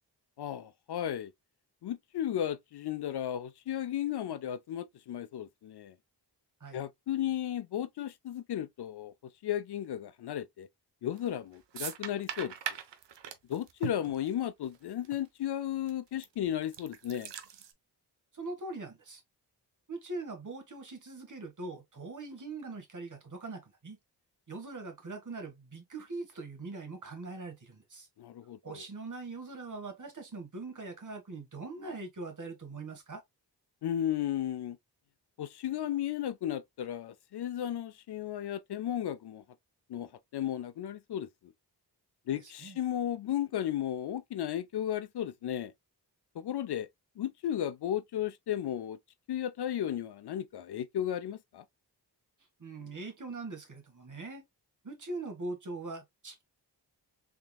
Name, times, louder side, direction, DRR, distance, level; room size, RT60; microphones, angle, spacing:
voice 1, 0.4-1.3 1.8-5.9 6.7-9.1 9.4-10.7 11.0-12.5 13.5-17.3 28.2-28.8 33.8-34.8 35.4-39.4 39.9-41.5 42.3-45.7 46.4-46.9 47.2-49.0 49.3-51.6, left 11 dB, 70° left, 0.5 m, -34 dB
sound 1, 11.1-11.4 11.7-14.8 15.1-15.2 15.9-16.3 16.6-17.7, right 9 dB, 90° right, 0.7 m, -40 dB
voice 2, 18.3-19.2 19.9-24.0 24.5-28.1 28.6-33.2 42.3-42.8 52.6-54.4 54.8-56.4, right 3 dB, 45° right, 1.6 m, -42 dB
3.7 x 3.5 x 2.3 m
wide cardioid pair, 75°, 42 cm